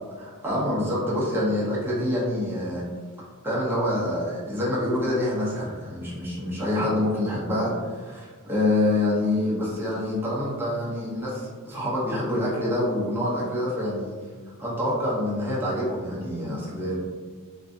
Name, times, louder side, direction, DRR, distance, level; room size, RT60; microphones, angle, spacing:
voice 1, 0.2-2.8 3.4-14.1 14.6-17.0, left 1 dB, 10° right, -8 dB, 0.6 m, -26 dB
2.5 x 2.3 x 2.4 m, 1.5 s
head